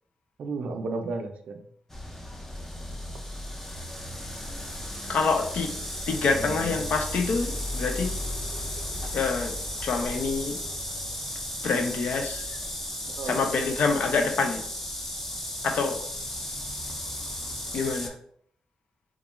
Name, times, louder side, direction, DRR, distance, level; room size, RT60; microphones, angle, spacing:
voice 1, 0.4-1.6 6.4-6.9 13.0-13.4, right 3 dB, 75° right, 6 dB, 0.3 m, -33 dB
sound 1, 1.9-18.1, left 1 dB, 15° left, 0.4 m, -35 dB
voice 2, 5.1-5.7 6.1-8.1 9.1-9.5 9.8-10.6 11.6-12.6 13.2-14.6 15.6-16.0 17.7-18.1, left 4 dB, 80° left, 4 dB, 0.4 m, -26 dB
2.4 x 2.2 x 2.9 m, 0.65 s
cardioid pair, 100°, 2 cm